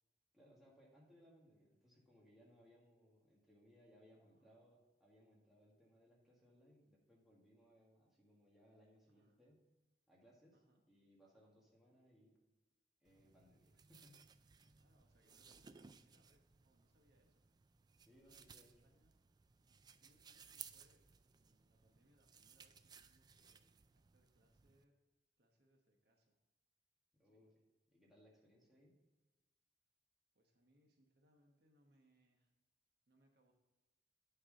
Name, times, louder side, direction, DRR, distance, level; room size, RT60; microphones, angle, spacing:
voice 1, 0.3-9.6 10.1-10.6 10.9-12.4 13.0-14.2 14.6-14.7 18.0-18.9 27.1-27.5 27.9-29.0, equal, ahead, -4 dB, 1.9 m, -68 dB
voice 2, 4.1-4.7 9.0-9.4 10.5-10.8 14.8-17.5 18.2-19.2 19.6-23.6 23.9-25.0 25.4-26.4 27.3-27.5 30.3-32.5 33.1-33.5, right 1 dB, 60° right, 2 dB, 1.2 m, -76 dB
sound 1, 13.1-24.8, right 7 dB, 25° right, 0.3 m, -61 dB
8.9 x 4.8 x 5.1 m, 1.1 s
head